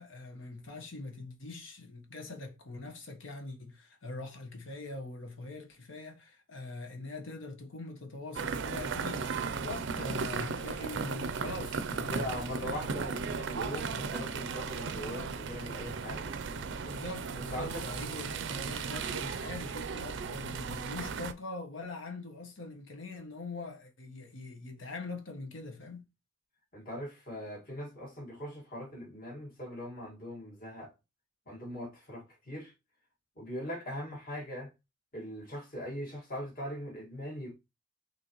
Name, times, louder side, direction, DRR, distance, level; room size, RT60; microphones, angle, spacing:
voice 1, 0.0-12.8 13.3-14.1 16.8-26.0, left 2 dB, 80° left, 1.1 m, -43 dB
sound 1, 8.3-21.3, right 5 dB, 65° right, 0.5 m, -36 dB
voice 2, 12.0-16.8 17.4-17.8 26.7-30.9 31.5-32.7 33.4-34.7 35.1-37.5, equal, 50° left, 1.9 m, -41 dB
6.1 x 2.8 x 3.0 m
head